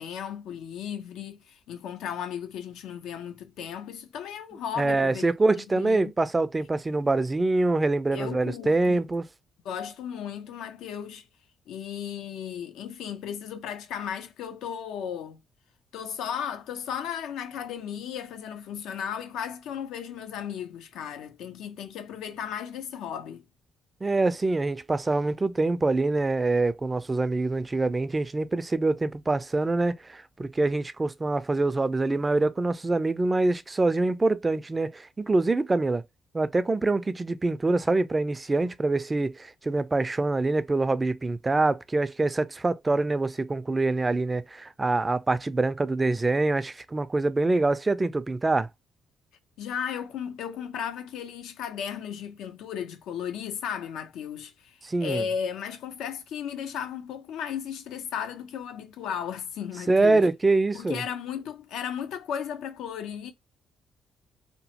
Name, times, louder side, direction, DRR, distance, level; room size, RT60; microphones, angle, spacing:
voice 1, 0.0-6.1 8.1-9.1 9.6-11.3 11.7-15.4 15.9-23.4 49.6-60.3 60.7-63.3, left 8 dB, 85° left, 0.5 m, -35 dB
voice 2, 4.8-9.2 24.0-36.0 36.3-48.7 54.8-55.2 59.9-61.0, right 2 dB, 20° right, 0.3 m, -25 dB
2.9 x 2.1 x 2.8 m
cardioid pair, 90°, 0 cm